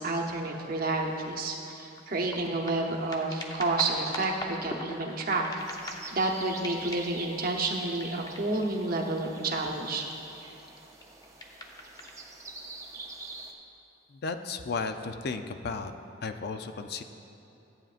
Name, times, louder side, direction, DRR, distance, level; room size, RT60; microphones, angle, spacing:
voice 1, 0.0-5.4 6.1-10.0, right 2 dB, 50° right, 1 dB, 0.9 m, -30 dB
sound 1, 0.9-1.0 1.3-6.3 6.5-7.3 7.9-9.6 10.3-12.2 12.8-12.9, left 1 dB, 20° left, 0.7 m, -42 dB
sound 2, 5.6-13.5, right 3 dB, 15° right, 0.6 m, -46 dB
voice 2, 14.1-15.9 16.2-17.0, left 4 dB, 55° left, 8 dB, 0.4 m, -34 dB
13.5 x 8.9 x 2.5 m, 2.9 s
head